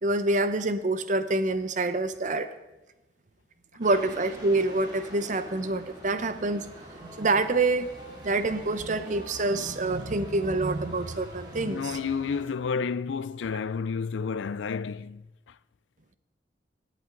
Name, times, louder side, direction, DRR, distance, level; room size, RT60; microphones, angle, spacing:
voice 1, 0.0-2.5 3.8-7.9 8.2-12.0, right 2 dB, 45° right, 0.7 m, -27 dB
sound 1, 3.8-12.4, equal, 25° right, 2.5 m, -45 dB
voice 2, 11.6-15.2, left 5 dB, 90° left, 0.4 m, -30 dB
16.5 x 8.4 x 3.8 m
head